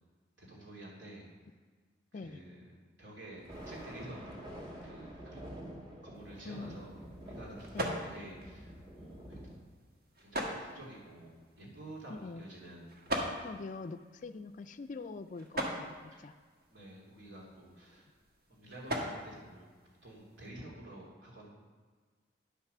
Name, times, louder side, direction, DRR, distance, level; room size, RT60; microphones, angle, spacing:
voice 1, 0.4-1.3 2.1-4.6 4.8-5.4 6.0-6.9 7.2-9.5 10.2-13.0 16.1-16.3 16.7-18.1 18.5-19.7 20.0-21.5, right 1 dB, 70° right, -4 dB, 2.9 m, -50 dB
Thunder, 3.3-9.6, equal, 25° right, 1.7 m, -48 dB
sound 1, 6.1-20.5, equal, 50° right, 1.4 m, -43 dB
voice 2, 6.5-6.8 7.7-7.9 12.1-12.4 13.4-16.4, left 3 dB, 40° left, 8 dB, 0.4 m, -44 dB
10.0 x 5.7 x 6.7 m, 1.5 s
head